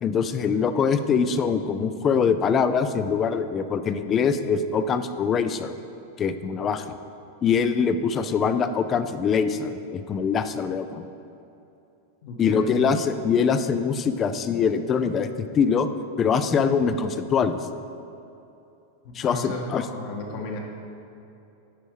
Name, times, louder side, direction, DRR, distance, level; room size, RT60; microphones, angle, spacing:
voice 1, 0.0-5.7 6.2-7.0 7.4-11.1 12.4-15.9 16.2-17.7 19.1-19.8 20.1-20.2, left 6 dB, 30° left, 10 dB, 0.5 m, -23 dB
voice 2, 12.2-12.9 19.0-20.6, left 2 dB, 55° left, 0 dB, 1.7 m, -34 dB
9.9 x 5.4 x 4.9 m, 2.8 s
hypercardioid pair, 120°, 0 cm